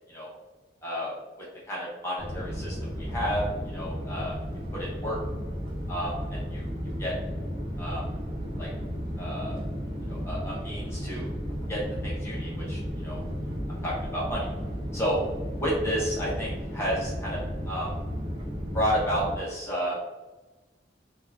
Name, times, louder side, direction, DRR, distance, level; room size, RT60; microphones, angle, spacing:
voice 1, 0.8-1.1 1.7-3.4 3.7-4.4 4.7-5.2 5.9-6.7 7.0-7.1 7.8-8.0 8.6-8.7 9.2-9.6 10.1-11.3 11.7-13.2 13.8-14.5 14.9-15.2 15.6-17.9 18.7-20.0, equal, 15° left, -6 dB, 0.6 m, -31 dB
sound 1, 2.2-19.3, equal, 25° right, 0.8 m, -34 dB
3.4 x 2.2 x 2.3 m, 1.1 s
head